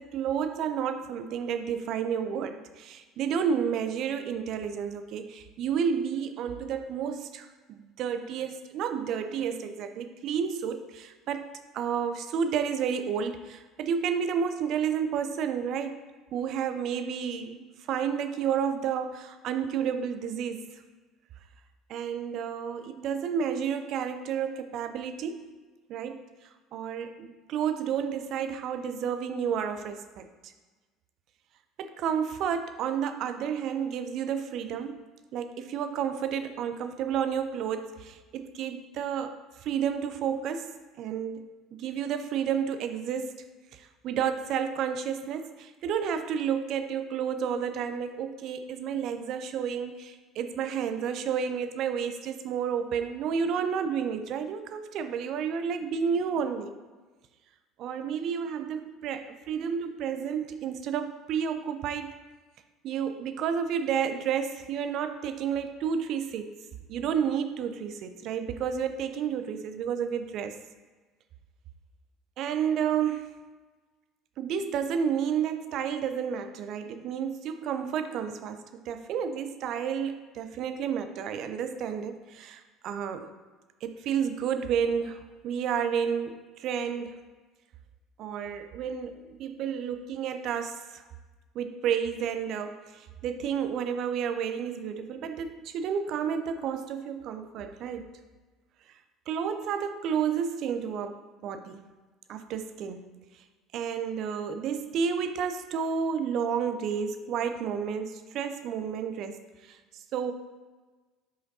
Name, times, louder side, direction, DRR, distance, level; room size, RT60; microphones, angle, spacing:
voice 1, 0.0-11.5 11.7-16.0 16.3-20.6 21.9-25.5 25.9-26.2 26.7-30.5 31.8-35.0 35.3-43.4 43.7-56.8 57.8-62.1 62.8-66.6 66.9-70.6 72.4-73.3 74.4-83.3 83.8-87.1 88.2-91.0 91.5-98.1 99.3-101.9 102.3-103.2 103.7-109.8 110.1-110.3, right 7 dB, 50° right, 8 dB, 0.4 m, -31 dB
7.1 x 5.0 x 2.7 m, 1.3 s
figure-of-eight pair, 60°, 0 cm